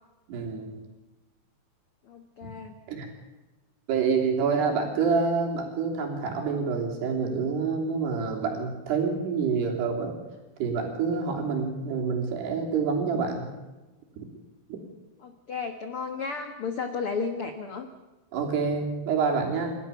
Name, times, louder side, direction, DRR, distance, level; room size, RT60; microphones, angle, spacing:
voice 1, 0.3-0.8 2.4-2.5 2.9-3.1 3.9-10.2 10.6-13.5 14.2-14.3 14.7-14.8 18.3-19.8, right 5 dB, 75° right, 1 dB, 5.4 m, -27 dB
voice 2, 2.0-2.8 15.2-17.9, left 5 dB, 90° left, 7 dB, 1.2 m, -33 dB
29.5 x 13.0 x 7.1 m, 1.1 s
omnidirectional pair, 4.8 m